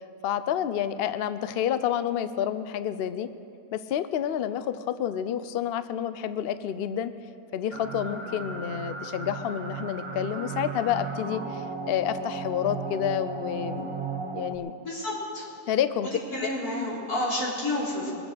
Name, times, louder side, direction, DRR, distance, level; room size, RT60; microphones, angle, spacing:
voice 1, 0.2-3.3 3.7-7.1 7.5-13.9 14.3-14.7 15.7-16.1, left 10 dB, 65° left, 12 dB, 0.6 m, -29 dB
sound 1, 7.7-14.6, right 4 dB, 25° right, 0.8 m, -35 dB
voice 2, 14.8-15.5 16.3-18.1, left 1 dB, 85° left, -6 dB, 4.1 m, -30 dB
22.5 x 8.0 x 6.4 m, 2.6 s
omnidirectional pair, 1.6 m